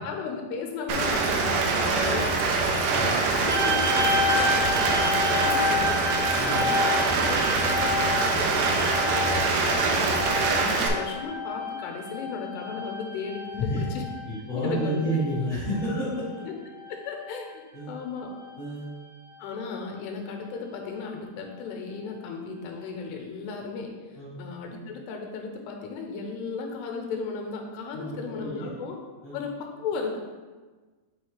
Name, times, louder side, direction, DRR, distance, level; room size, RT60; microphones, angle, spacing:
voice 1, 0.0-2.9 3.3-6.0 6.3-9.7 10.0-14.0 14.5-15.2 16.5-16.6 16.9-18.3 19.4-23.9 24.4-29.0 29.3-30.2, left 5 dB, 80° left, 2 dB, 2.7 m, -35 dB
Rain, 0.9-10.9, right 3 dB, 85° right, 2.0 m, -24 dB
voice 2, 2.8-3.1 6.3-6.6 13.6-13.8 14.2-16.2 17.7-17.9 18.6-18.9 24.1-24.4 27.9-28.7 29.2-29.4, equal, 55° left, -11 dB, 0.9 m, -30 dB
sound 1, 3.5-16.4 16.7-17.5 18.2-18.5, left 2 dB, 45° right, 2.3 m, -30 dB
7.1 x 5.5 x 3.2 m, 1.3 s
omnidirectional pair, 5.0 m